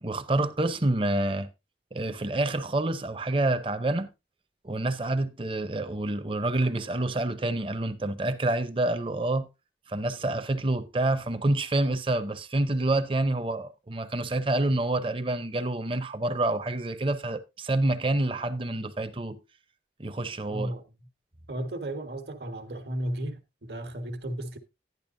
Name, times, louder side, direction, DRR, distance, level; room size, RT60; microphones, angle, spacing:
voice 1, 0.0-1.5 1.9-4.1 4.6-9.5 9.9-19.4 20.0-20.7, right 2 dB, 30° right, 0.7 m, -27 dB
voice 2, 20.5-20.8 21.5-24.6, right 1 dB, 70° right, 1.5 m, -34 dB
11.5 x 10.5 x 2.6 m
head